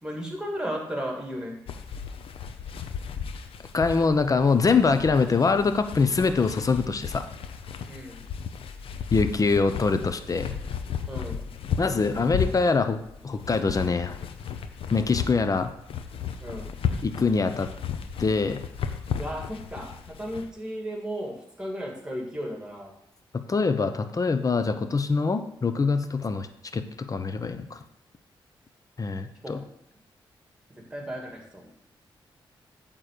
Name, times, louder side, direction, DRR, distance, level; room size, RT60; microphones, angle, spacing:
voice 1, 0.0-1.5 3.9-4.0 7.9-8.2 11.1-11.4 16.4-16.7 19.2-19.9 20.2-22.9 29.4-29.6 30.9-31.6, equal, 10° right, 0 dB, 2.5 m, -34 dB
sound 1, 1.7-20.5, left 7 dB, 85° left, 0.7 m, -34 dB
voice 2, 3.7-7.2 9.1-10.5 11.8-13.0 13.2-14.2 14.9-15.7 17.0-17.7 18.2-18.6 23.5-26.5 26.7-27.8 29.0-29.6, left 4 dB, 40° left, 9 dB, 0.8 m, -24 dB
8.6 x 3.9 x 6.7 m, 0.78 s
cardioid pair, 70°, 9 cm